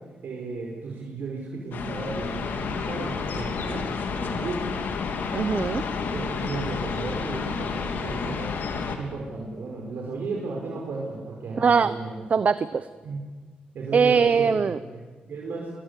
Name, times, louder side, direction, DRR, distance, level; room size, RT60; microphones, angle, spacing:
voice 1, 0.2-3.9 4.2-4.8 6.1-8.6 8.9-12.3 13.0-13.2 13.7-15.7, right 3 dB, 80° right, -2 dB, 5.0 m, -34 dB
sound 1, 1.7-9.0, left 5 dB, 80° left, 3.1 m, -30 dB
voice 2, 5.3-5.8 11.6-11.9 12.3-12.9 13.9-14.8, right 6 dB, 50° right, 13 dB, 0.8 m, -21 dB
23.0 x 23.0 x 8.4 m, 1.4 s
cardioid pair, 90°, 3 cm